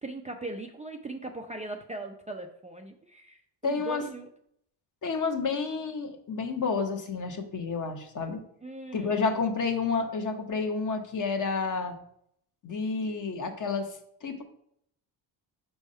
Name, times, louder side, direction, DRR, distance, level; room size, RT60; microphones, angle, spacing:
voice 1, 0.0-4.3 8.6-9.2, right 2 dB, 15° right, 3 dB, 0.5 m, -39 dB
voice 2, 3.6-4.0 5.0-8.4 8.9-11.9 12.6-13.9 14.2-14.4, left 4 dB, 40° left, 5 dB, 1.2 m, -30 dB
5.3 x 3.5 x 5.4 m, 0.70 s
cardioid pair, 90°, 48 cm